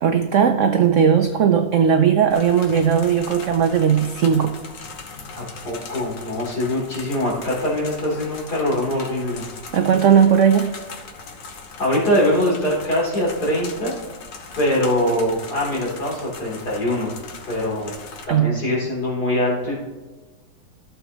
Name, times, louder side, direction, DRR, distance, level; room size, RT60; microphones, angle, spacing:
voice 1, 0.0-4.6 9.7-10.7 18.3-18.6, right 7 dB, 75° right, 0.7 m, -17 dB
sound 1, 2.3-18.2, left 4 dB, 75° left, 1.7 m, -39 dB
voice 2, 5.4-9.4 11.8-14.0 14.6-17.1 17.5-18.0 18.3-19.8, left 1 dB, 60° left, 3.9 m, -23 dB
13.5 x 7.0 x 3.0 m
omnidirectional pair, 2.0 m